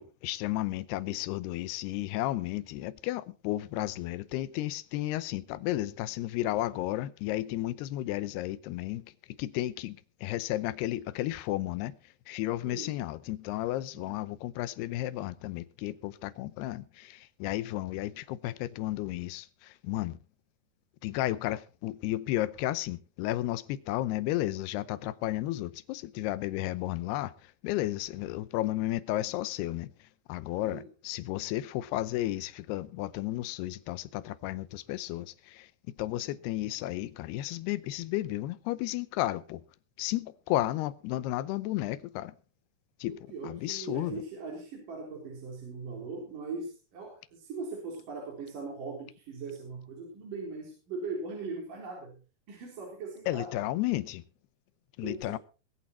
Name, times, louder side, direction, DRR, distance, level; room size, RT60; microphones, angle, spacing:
voice 1, 0.0-9.1 9.4-10.0 10.2-12.0 12.3-20.2 21.0-27.3 27.6-29.9 30.3-35.7 36.0-39.6 40.0-42.3 43.0-43.2 43.4-44.2 53.3-54.2 55.0-55.4, left 15 dB, 85° left, 2.9 m, -33 dB
voice 2, 12.6-13.0 13.9-14.2 30.6-30.9 43.0-52.2 52.5-53.5 55.0-55.4, right 3 dB, 55° right, 5.6 m, -40 dB
21.5 x 8.6 x 4.4 m
omnidirectional pair, 4.6 m